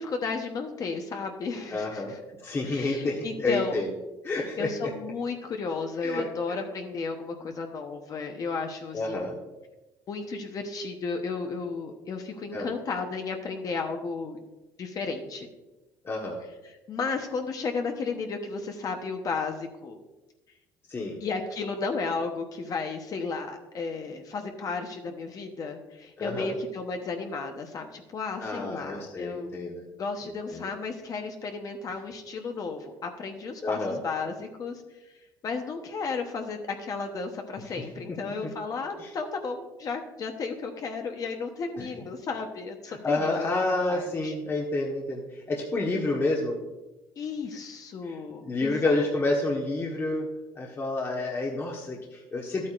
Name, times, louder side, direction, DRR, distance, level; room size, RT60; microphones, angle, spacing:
voice 1, 0.0-2.2 2.6-3.8 4.6-9.4 10.1-14.4 14.8-15.5 16.6-20.0 21.2-29.5 30.0-35.1 35.4-43.3 43.9-44.3 47.2-49.0, left 4 dB, 45° left, 4 dB, 1.0 m, -33 dB
voice 2, 1.7-2.1 2.4-3.9 4.2-4.9 6.0-6.6 8.9-9.3 12.5-12.7 16.0-16.4 20.9-21.2 26.2-26.5 28.4-29.8 30.5-30.7 33.6-34.0 37.8-37.9 38.2-38.5 39.0-39.1 41.8-41.9 42.9-46.6 48.0-50.3 50.6-52.7, left 2 dB, 30° left, -1 dB, 1.2 m, -29 dB
11.5 x 8.5 x 2.5 m, 1.0 s
cardioid pair, 105°, 8 cm